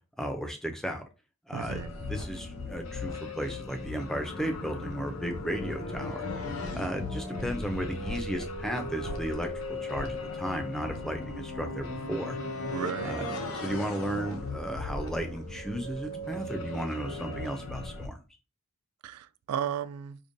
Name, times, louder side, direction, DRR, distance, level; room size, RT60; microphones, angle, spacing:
voice 1, 0.2-1.0 1.5-1.8 2.1-6.3 6.8-12.4 13.0-13.3 13.5-18.2, equal, ahead, 0.4 m, -34 dB
sound 1, 1.5-18.1, left 2 dB, 70° left, 0.7 m, -37 dB
voice 2, 1.5-1.9 12.7-13.2 19.0-20.2, right 9 dB, 90° right, 0.3 m, -34 dB
5.1 x 2.2 x 2.6 m
head